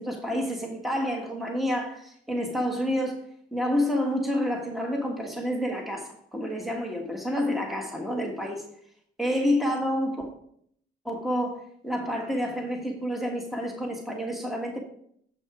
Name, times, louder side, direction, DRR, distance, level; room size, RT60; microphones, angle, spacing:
voice 1, 0.0-3.2 3.5-8.6 9.2-10.3 11.0-14.8, equal, ahead, 1 dB, 1.5 m, -29 dB
7.9 x 5.4 x 4.9 m, 0.66 s
cardioid pair, 90°, 20 cm